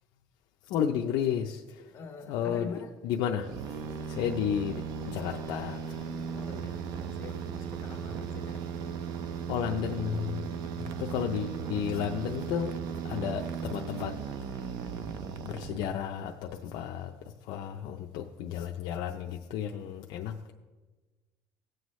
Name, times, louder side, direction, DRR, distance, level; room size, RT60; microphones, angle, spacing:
voice 1, 0.7-1.8 2.3-2.7 3.0-3.5 4.1-6.1 9.5-10.4 10.8-12.7 13.0-14.2 15.4-17.1 17.4-20.5, left 9 dB, 65° left, 2 dB, 0.5 m, -32 dB
voice 2, 1.9-2.9 6.3-8.6 10.7-11.4, left 4 dB, 25° left, -4 dB, 1.3 m, -45 dB
sound 1, 3.4-16.3, right 6 dB, 55° right, 0.6 m, -37 dB
18.5 x 7.7 x 3.2 m, 1.3 s
cardioid pair, 175°, 8 cm